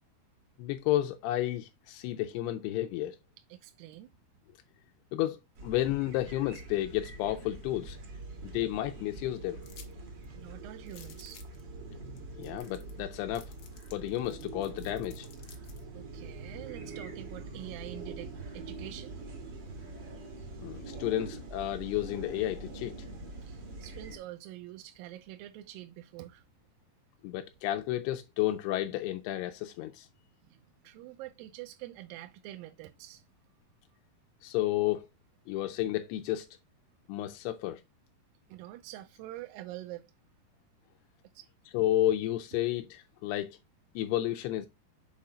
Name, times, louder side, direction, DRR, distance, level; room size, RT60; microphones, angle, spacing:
voice 1, 0.6-3.2 5.1-8.0 8.4-9.6 12.4-13.5 13.9-15.3 20.6-22.9 27.2-30.1 34.4-35.1 35.5-36.5 37.1-37.8 41.7-43.6 44.0-44.7, left 14 dB, 85° left, 2.6 m, -31 dB
voice 2, 3.5-4.1 10.3-11.7 15.9-19.1 23.4-26.4 30.5-33.2 38.5-40.1 41.4-41.5, right 14 dB, 85° right, 2.2 m, -46 dB
sound 1, 5.6-24.2, right 3 dB, 65° right, 1.1 m, -44 dB
sound 2, 9.6-9.9 10.2-10.3 10.9-11.6 12.2-12.3 12.4-13.0 13.3-15.8, left 8 dB, 70° left, 1.7 m, -54 dB
6.9 x 3.8 x 4.2 m
omnidirectional pair, 4.6 m